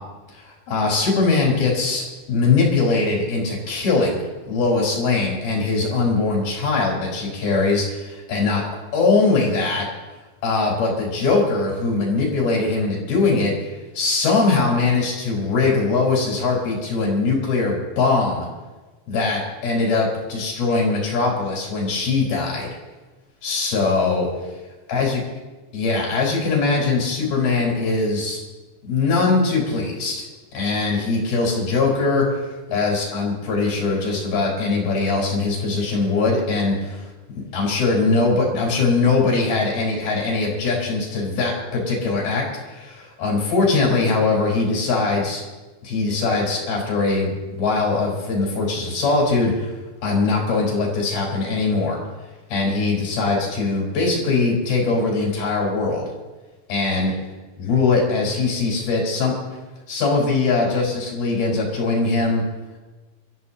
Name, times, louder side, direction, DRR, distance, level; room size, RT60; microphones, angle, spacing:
voice 1, 0.3-8.6 8.9-9.9 10.4-18.5 19.1-22.7 23.4-24.3 24.9-25.2 25.7-28.4 28.8-30.2 30.5-37.1 37.5-45.4 45.8-49.7 50.0-52.0 52.5-56.1 56.7-57.1 57.6-59.3 59.9-62.4, left 3 dB, 60° left, -2 dB, 6.0 m, -21 dB
28.0 x 14.0 x 2.9 m, 1.2 s
omnidirectional pair, 5.0 m